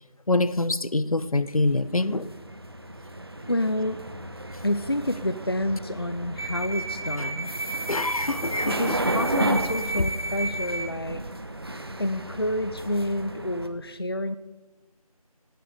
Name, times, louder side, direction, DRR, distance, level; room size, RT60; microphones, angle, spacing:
voice 1, 0.3-2.3 7.2-7.3 7.9-9.0 10.0-10.1, left 2 dB, 65° left, 1.0 m, -25 dB
sound 1, 1.7-13.7, right 1 dB, 40° right, 1.1 m, -32 dB
voice 2, 3.5-4.0 4.6-7.5 8.6-11.2 12.0-14.4, left 1 dB, 40° left, 0.5 m, -28 dB
18.5 x 6.9 x 9.5 m
figure-of-eight pair, 175°, 19 cm